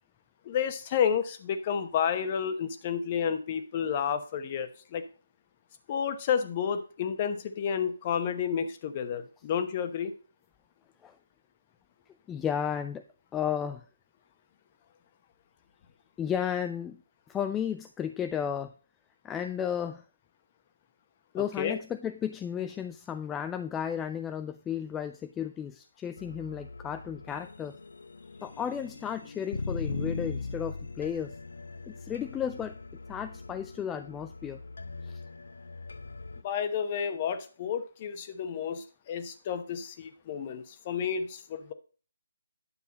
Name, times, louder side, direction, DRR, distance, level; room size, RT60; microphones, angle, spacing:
voice 1, 0.4-5.0 5.9-10.1 21.3-21.8 36.4-41.7, left 7 dB, 30° left, 10 dB, 0.9 m, -31 dB
voice 2, 12.3-13.0 13.3-13.8 16.2-17.0 17.3-18.7 19.2-20.0 21.3-27.8 28.4-31.4 31.9-32.8 33.1-34.6 35.0-35.2, left 8 dB, 10° left, 8 dB, 0.3 m, -33 dB
sound 1, 26.2-36.4, left 3 dB, 80° left, 0.6 m, -40 dB
9.7 x 6.9 x 4.1 m, 0.39 s
figure-of-eight pair, 155°, 0 cm